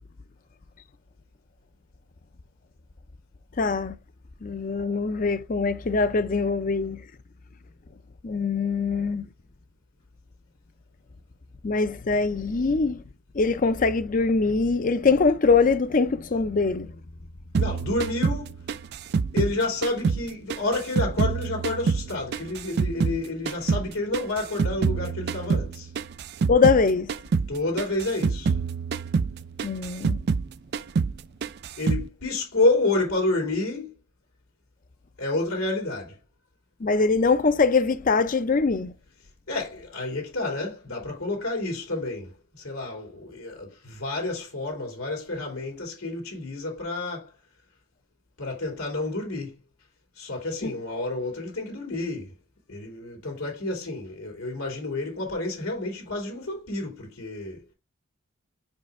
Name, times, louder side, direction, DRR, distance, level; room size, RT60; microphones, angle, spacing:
voice 1, 3.6-3.9 4.4-7.0 8.2-9.3 11.6-13.0 13.3-16.9 26.5-27.1 29.6-30.2 36.8-38.9 50.6-50.7, left 4 dB, 40° left, 0.5 m, -23 dB
sound 1, 17.5-20.2 20.5-23.2 23.5-26.8 27.1-27.5 27.8-30.5 30.7-31.2 31.4-32.1, right 5 dB, 50° right, 0.3 m, -26 dB
voice 2, 17.6-18.6 19.3-25.9 27.5-28.5 31.8-33.9 35.2-36.2 39.5-47.3 48.4-49.5 50.2-52.3 52.7-57.6, left 2 dB, 85° left, 2.7 m, -29 dB
5.4 x 5.1 x 3.5 m
head